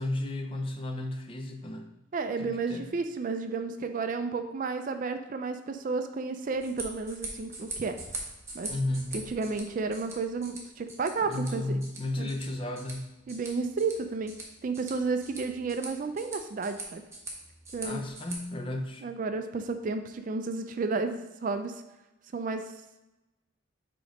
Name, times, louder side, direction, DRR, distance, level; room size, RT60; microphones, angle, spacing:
voice 1, 0.0-1.9 2.4-2.9 8.7-9.2 11.2-13.1 17.8-19.1, left 1 dB, 25° left, 5 dB, 0.5 m, -33 dB
voice 2, 2.1-8.0 8.5-8.7 9.1-11.8 12.2-12.3 13.3-14.3 14.6-17.0 17.7-18.0 19.0-21.8 22.3-22.6, right 4 dB, 40° right, 7 dB, 0.3 m, -32 dB
sound 1, 6.5-18.4, right 2 dB, 15° right, 0.9 m, -43 dB
5.2 x 3.8 x 4.9 m, 1.0 s
head